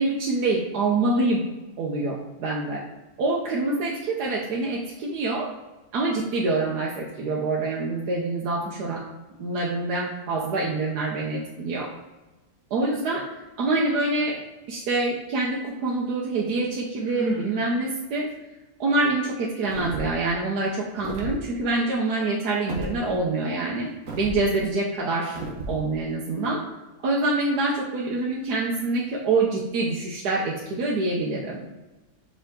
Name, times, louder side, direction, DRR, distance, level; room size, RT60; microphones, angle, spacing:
voice 1, 0.0-1.4 1.8-2.8 3.2-5.5 5.9-9.0 9.4-11.9 12.7-13.2 13.6-14.4 14.7-18.3 18.8-23.9 24.2-25.4 25.7-26.6 27.0-31.6, right 2 dB, 80° right, -3 dB, 1.4 m, -26 dB
Sigh, 17.0-17.6, equal, 10° right, 0.9 m, -31 dB
sound 1, 19.7-20.2 21.0-21.4 22.7-22.9 24.1-24.4 25.4-25.8, right 2 dB, 60° right, 1.3 m, -33 dB
5.7 x 5.0 x 3.7 m, 1.1 s
omnidirectional pair, 1.7 m